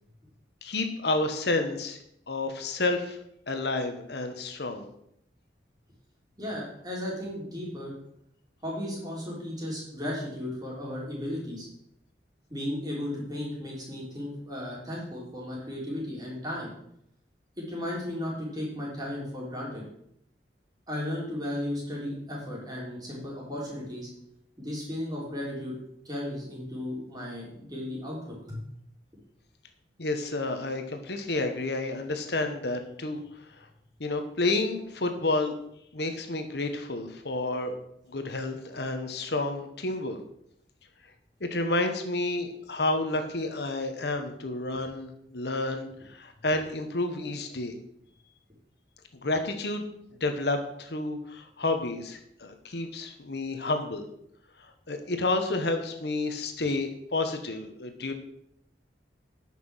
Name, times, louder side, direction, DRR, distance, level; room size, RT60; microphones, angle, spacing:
voice 1, 0.6-2.0 2.3-3.2 3.5-4.9 30.0-33.2 34.0-35.5 35.9-37.8 38.1-40.2 41.4-47.7 49.2-49.9 50.2-54.0 54.9-58.1, left 2 dB, 65° left, 6 dB, 1.1 m, -30 dB
voice 2, 6.4-7.9 8.6-11.7 12.5-16.7 17.6-19.9 20.9-24.1 24.6-25.7 26.1-28.2 28.5-28.6, left 1 dB, 20° right, -4 dB, 3.7 m, -35 dB
9.6 x 6.0 x 6.3 m, 0.74 s
head